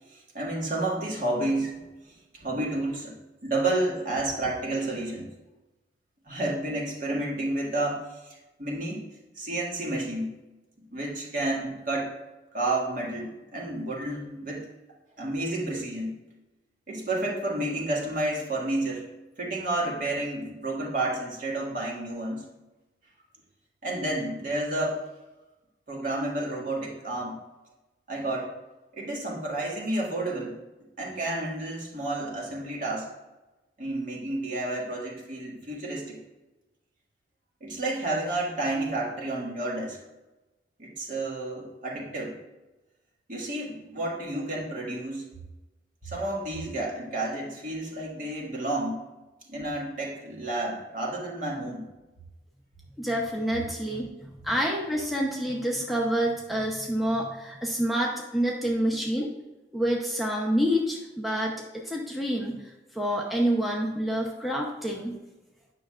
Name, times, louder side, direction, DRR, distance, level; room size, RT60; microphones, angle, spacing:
voice 1, 0.1-3.1 3.4-5.3 6.3-9.0 9.4-10.3 10.9-12.1 12.5-14.7 15.2-16.2 16.9-19.1 19.4-22.4 23.8-25.0 25.9-27.4 28.1-28.5 28.9-30.6 31.0-33.1 33.8-36.2 37.6-40.0 40.8-42.4 43.3-45.2 46.0-49.0 49.5-51.9, right 2 dB, 50° right, -2 dB, 1.9 m, -30 dB
voice 2, 53.0-59.3 59.7-65.2, equal, ahead, -3 dB, 0.8 m, -28 dB
9.5 x 6.1 x 2.4 m, 1.1 s
head